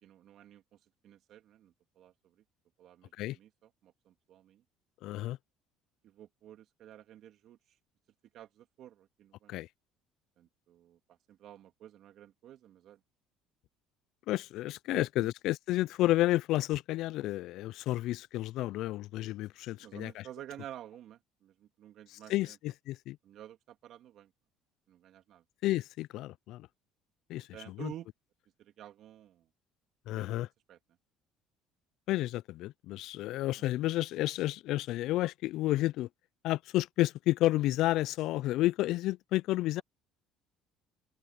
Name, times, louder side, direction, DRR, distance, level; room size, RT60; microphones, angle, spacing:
voice 1, 0.0-2.4 2.8-4.6 6.0-7.8 8.3-9.6 10.4-13.0 14.9-15.3 19.7-22.6 23.2-24.3 24.9-25.4 27.5-28.1 28.6-29.5 30.1-30.8 39.8-39.9, right 12 dB, 60° right, 3.0 m, -51 dB
voice 2, 5.0-5.4 9.5-9.7 14.3-20.2 22.3-23.2 25.6-26.7 27.3-27.9 30.1-30.5 32.1-36.1 36.4-39.8, left 16 dB, 70° left, 0.3 m, -31 dB
open air
cardioid pair, 105°, 0 cm